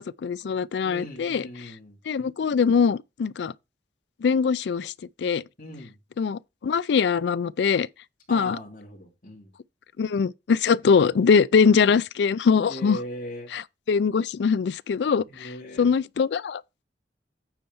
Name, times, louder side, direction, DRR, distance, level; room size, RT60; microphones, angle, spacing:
voice 1, 0.2-1.5 2.1-3.5 4.2-4.9 5.2-5.4 6.2-7.9 8.3-8.6 10.0-13.0 13.5-13.6 13.9-15.5 15.8-16.6, left 6 dB, 75° left, 0.4 m, -22 dB
voice 2, 0.8-2.0 5.6-6.0 8.3-9.5 12.7-13.5 15.3-15.9, left 1 dB, 50° left, 2.9 m, -39 dB
9.0 x 4.4 x 5.5 m
head